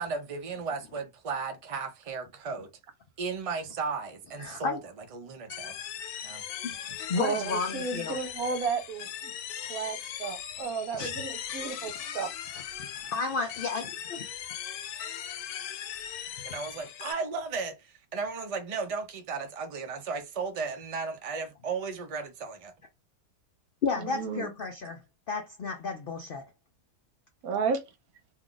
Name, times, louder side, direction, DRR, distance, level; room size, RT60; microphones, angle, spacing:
voice 1, 0.0-2.7 3.2-5.7 6.2-6.4 16.4-22.7, right 5 dB, 45° right, 0.4 m, -35 dB
voice 2, 4.4-4.8 6.6-6.7 7.1-8.2 10.9-11.1 12.9-14.2 23.8-25.0 25.3-26.4, left 4 dB, 70° left, 0.5 m, -32 dB
sound 1, 5.5-17.1, left 10 dB, 90° left, 1.1 m, -39 dB
voice 3, 7.2-9.3 9.7-12.3 24.0-24.5 27.4-27.8, right 5 dB, 75° right, 1.2 m, -33 dB
2.7 x 2.4 x 3.8 m
omnidirectional pair, 1.6 m